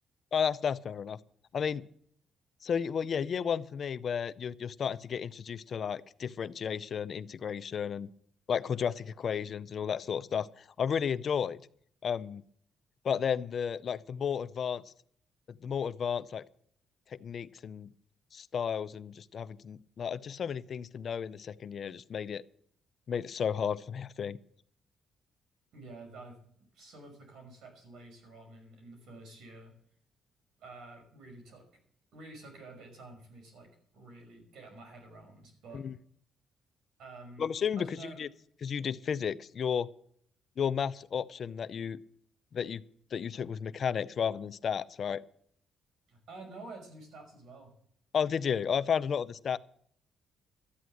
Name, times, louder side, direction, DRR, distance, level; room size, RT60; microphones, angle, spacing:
voice 1, 0.3-1.2 1.5-1.8 2.6-8.1 8.5-11.6 12.0-12.4 13.0-14.9 15.5-16.4 17.1-17.9 18.3-22.4 23.1-24.4 35.7-35.9 37.4-38.3 38.6-39.9 40.6-42.0 42.5-42.8 43.1-45.2 48.1-49.6, left 7 dB, 55° left, 16 dB, 0.5 m, -33 dB
voice 2, 25.7-29.7 30.6-31.6 32.1-35.8 37.0-37.5 37.8-38.2 46.1-47.7, right 2 dB, 80° right, 3 dB, 5.7 m, -49 dB
13.0 x 9.3 x 7.7 m, 0.65 s
cardioid pair, 90°, 0 cm